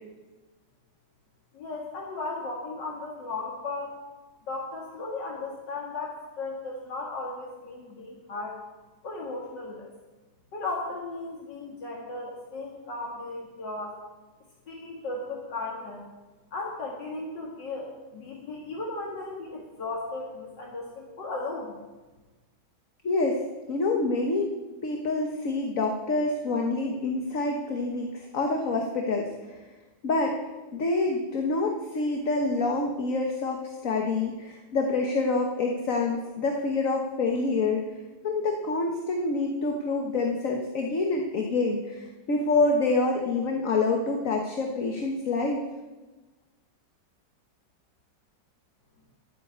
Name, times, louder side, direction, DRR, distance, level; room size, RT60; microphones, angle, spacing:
voice 1, 1.5-4.0 4.5-8.6 9.0-9.9 10.5-14.0 14.7-16.0 16.5-21.8, left 3 dB, 75° left, -2 dB, 2.5 m, -36 dB
voice 2, 23.0-23.4 23.7-24.5 24.8-29.3 30.0-30.4 30.7-37.8 38.2-45.6, left 3 dB, 50° left, 2 dB, 1.6 m, -27 dB
12.5 x 9.3 x 8.1 m, 1.2 s
omnidirectional pair, 1.9 m